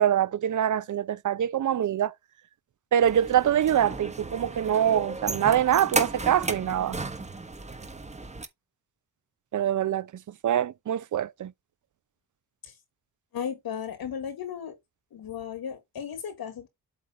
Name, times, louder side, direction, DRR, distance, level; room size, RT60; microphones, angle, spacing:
voice 1, 0.0-2.1 2.9-7.0 9.5-10.1 10.4-11.5, right 10 dB, 55° right, 0.6 m, -24 dB
sound 1, 3.0-8.5, right 3 dB, 20° right, 1.1 m, -34 dB
voice 2, 13.3-14.8 15.1-16.7, left 8 dB, 75° left, 1.5 m, -35 dB
8.2 x 3.1 x 5.2 m
cardioid pair, 75°, 37 cm